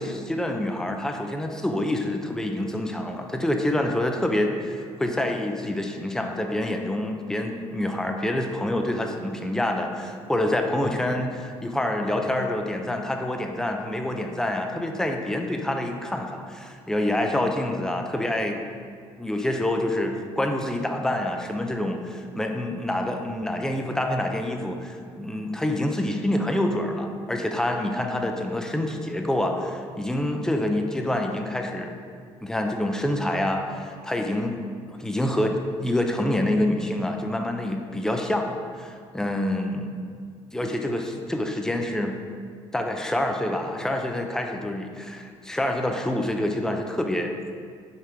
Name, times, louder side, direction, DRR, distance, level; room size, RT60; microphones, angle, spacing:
voice 1, 0.0-18.7 19.2-31.9 32.4-34.6 34.9-39.9 40.5-42.2 42.7-47.4, left 1 dB, 5° left, 3 dB, 0.7 m, -27 dB
5.8 x 4.7 x 4.5 m, 2.1 s
hypercardioid pair, 50°, 14 cm